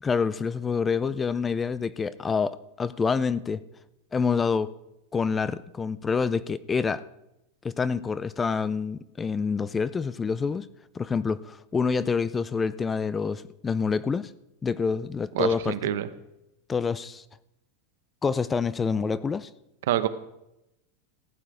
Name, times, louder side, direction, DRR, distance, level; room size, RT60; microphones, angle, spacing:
voice 1, 0.0-3.6 4.1-4.7 5.1-7.0 7.6-10.7 10.9-14.3 14.6-15.8 16.7-17.2 18.2-19.5, left 5 dB, 15° left, 18 dB, 0.3 m, -27 dB
voice 2, 15.3-16.1 19.9-20.1, right 12 dB, 75° right, 12 dB, 0.9 m, -26 dB
15.0 x 8.8 x 4.9 m, 0.87 s
supercardioid pair, 160°, 0 cm